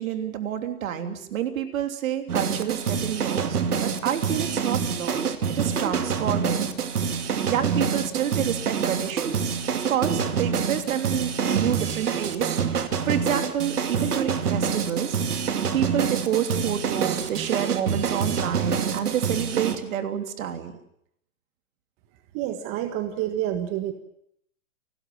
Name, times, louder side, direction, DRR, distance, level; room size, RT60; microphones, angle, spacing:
voice 1, 0.0-6.7 7.0-7.1 7.5-15.2 15.7-20.7, right 9 dB, 60° right, 7 dB, 3.2 m, -29 dB
sound 1, 2.3-19.8, right 6 dB, 85° right, 2.5 m, -26 dB
voice 2, 22.3-23.9, right 12 dB, 30° right, 8 dB, 1.7 m, -28 dB
29.5 x 13.0 x 8.8 m, 0.75 s
hypercardioid pair, 135°, 45 cm